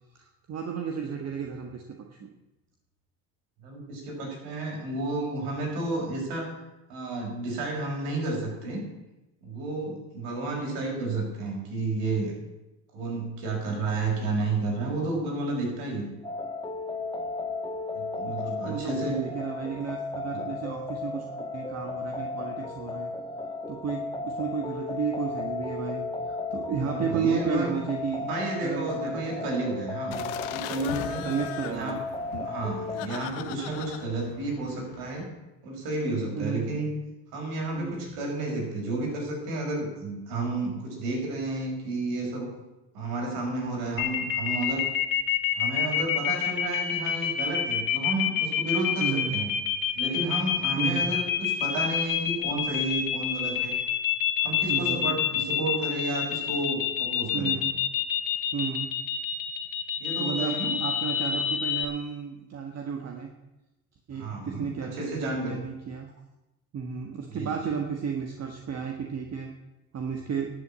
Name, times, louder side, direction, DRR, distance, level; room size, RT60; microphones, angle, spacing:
voice 1, 0.1-1.8 2.1-2.3 18.3-18.4 18.7-21.2 21.5-23.1 23.7-28.3 28.6-29.4 30.1-30.3 31.3-32.0 32.3-32.5 36.4-36.7 37.7-38.1 49.0-49.4 50.8-51.1 54.7-55.2 57.3-57.8 58.5-58.9 60.2-63.3 64.1-66.1 66.7-69.5 69.9-70.5, right 6 dB, 40° right, 3 dB, 1.6 m, -33 dB
voice 2, 3.6-6.5 6.9-8.8 9.4-12.3 12.9-16.1 17.9-19.2 20.3-20.5 26.8-27.7 28.2-30.2 30.5-31.3 31.7-31.9 32.4-35.3 35.6-36.9 37.3-42.5 42.9-44.8 45.5-49.5 49.9-53.8 54.4-57.6 60.0-60.8 64.1-65.6 67.3-67.8, right 2 dB, 80° right, 0 dB, 5.6 m, -31 dB
sound 1, 16.2-33.1, left 3 dB, 15° left, 1.3 m, -35 dB
sound 2, 30.1-35.3, left 12 dB, 90° left, 1.1 m, -39 dB
sound 3, 44.0-61.8, left 10 dB, 60° left, 2.0 m, -27 dB
12.0 x 7.6 x 8.6 m, 0.99 s
supercardioid pair, 95°, 38 cm